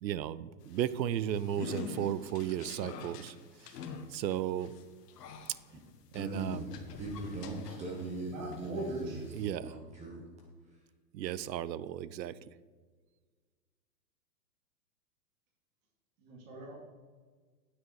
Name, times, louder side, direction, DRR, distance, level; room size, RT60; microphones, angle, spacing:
voice 1, 0.0-3.3 4.1-4.7 6.1-6.6 9.3-9.7 11.1-12.3, right 11 dB, 85° right, 18 dB, 0.6 m, -34 dB
sound 1, 0.6-8.2 8.5-9.4, left 5 dB, 70° left, 1.3 m, -46 dB
voice 2, 6.1-10.2, right 2 dB, 15° right, 0 dB, 0.8 m, -40 dB
voice 3, 8.2-9.2 16.2-16.7, right 2 dB, 50° right, -1 dB, 2.9 m, -40 dB
9.7 x 6.5 x 4.6 m, 1.5 s
hypercardioid pair, 140°, 50 cm